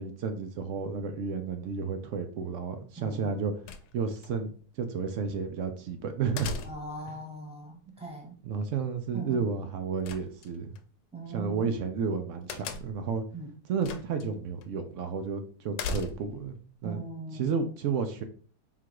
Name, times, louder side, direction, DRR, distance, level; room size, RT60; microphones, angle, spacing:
voice 1, 0.0-3.5 3.9-6.5 7.1-7.2 8.4-10.8 11.3-13.2 13.7-16.6 16.8-17.0 17.3-18.2, right 5 dB, 70° right, 7 dB, 0.7 m, -32 dB
voice 2, 3.0-3.3 6.6-8.4 9.1-9.5 11.1-11.7 13.3-13.5 16.8-17.6, right 2 dB, 5° right, -1 dB, 0.9 m, -40 dB
sound 1, 3.7-4.3 6.4-7.1 10.0-10.8 12.5-13.1 13.8-14.3 14.6-14.7 15.7-16.5, left 4 dB, 80° left, 1.1 m, -37 dB
3.7 x 2.4 x 4.5 m, 0.43 s
omnidirectional pair, 1.7 m